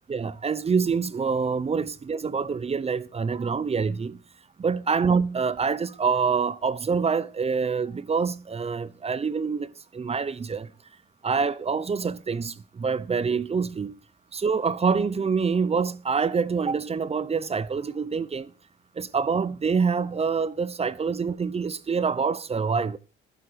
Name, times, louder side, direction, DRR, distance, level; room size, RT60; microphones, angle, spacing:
voice 1, 0.1-4.2 4.6-10.7 11.2-14.0 14.3-18.5 19.0-23.0, right 5 dB, 30° right, 0.8 m, -26 dB
11.0 x 10.5 x 5.0 m
cardioid pair, 90°, 20 cm